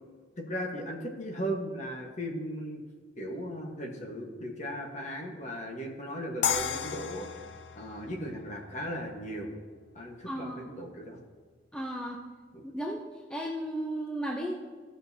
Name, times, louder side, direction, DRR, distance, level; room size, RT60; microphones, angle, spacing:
voice 1, 0.4-2.8 3.2-7.3 7.8-9.5 9.9-11.2 12.5-12.6, equal, 35° left, 0 dB, 1.3 m, -37 dB
sound 1, 6.4-9.5, left 8 dB, 60° left, 0.5 m, -34 dB
voice 2, 10.3-10.7 11.7-12.2 12.7-13.0 13.3-14.6, right 1 dB, 5° left, -1 dB, 0.6 m, -34 dB
14.5 x 6.3 x 2.8 m, 1.5 s
head